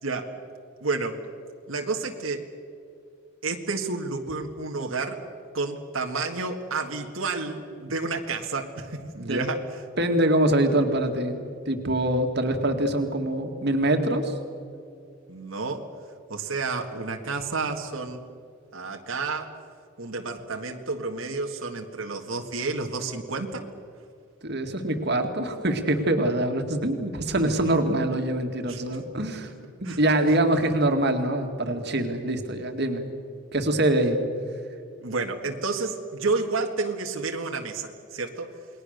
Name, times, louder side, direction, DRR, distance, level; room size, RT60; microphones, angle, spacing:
voice 1, 0.8-1.2 1.7-2.5 3.4-5.2 5.5-9.8 15.3-15.9 16.3-18.2 18.7-19.5 20.0-23.7 28.7-28.8 29.8-30.0 35.0-38.5, right 3 dB, 80° right, 3 dB, 1.8 m, -30 dB
voice 2, 10.0-14.3 24.4-29.5 29.8-33.1 33.5-34.2, right 1 dB, 50° right, 5 dB, 2.2 m, -24 dB
29.0 x 21.0 x 6.7 m, 2.4 s
head